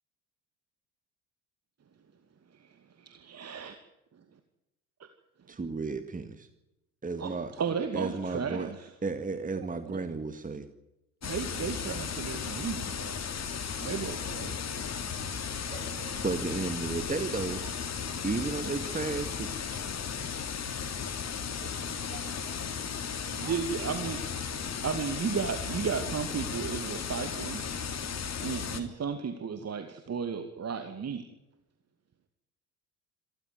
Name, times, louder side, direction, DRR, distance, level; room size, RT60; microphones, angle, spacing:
voice 1, 3.0-3.8 7.2-8.9 11.2-13.2 13.8-14.6 23.3-24.2 24.8-27.6 28.4-31.2, right 6 dB, 35° right, 7 dB, 2.6 m, -34 dB
voice 2, 5.5-6.5 7.0-7.5 7.9-8.7 9.0-10.7 16.2-17.6 18.2-19.5, right 3 dB, 20° right, 9 dB, 2.0 m, -33 dB
voice 3, 9.6-10.0 14.0-14.3 15.7-16.3 17.6-17.7 21.6-21.7 22.1-22.2 23.4-24.0, right 9 dB, 55° right, 5 dB, 6.0 m, -47 dB
sound 1, 11.2-28.8, left 6 dB, 35° left, 3.2 m, -35 dB
27.0 x 14.5 x 9.7 m, 0.90 s
hypercardioid pair, 60°, 43 cm